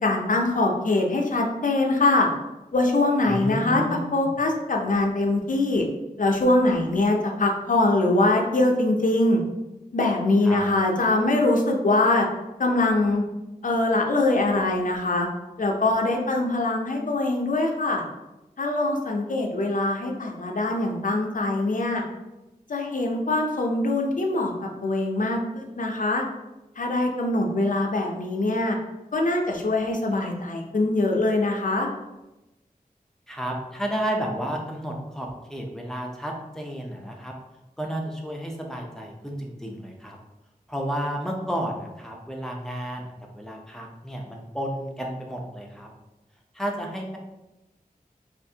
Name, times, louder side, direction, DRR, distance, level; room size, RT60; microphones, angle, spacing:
voice 1, 0.0-2.3 2.7-5.8 6.2-9.4 9.9-12.3 12.6-13.2 13.6-15.3 15.6-18.0 18.6-22.0 22.7-24.5 24.8-26.2 26.8-28.8 29.1-31.9, left 2 dB, 60° left, 1 dB, 0.5 m, -23 dB
voice 2, 3.3-4.3 10.4-10.6 33.3-37.3 37.8-40.2 40.7-45.9 46.5-47.2, right 1 dB, 5° left, 0 dB, 0.6 m, -32 dB
3.4 x 2.5 x 2.7 m, 0.98 s
wide cardioid pair, 70°, 15 cm